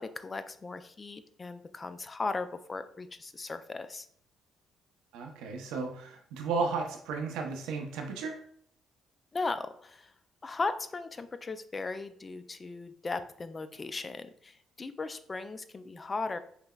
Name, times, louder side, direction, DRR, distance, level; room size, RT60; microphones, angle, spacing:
voice 1, 0.0-4.1 9.3-10.1 10.4-16.4, left 3 dB, 30° left, 11 dB, 0.3 m, -37 dB
voice 2, 5.1-8.4, right 4 dB, 90° right, 3 dB, 0.5 m, -34 dB
5.6 x 2.0 x 2.2 m, 0.63 s
cardioid pair, 80°, 0 cm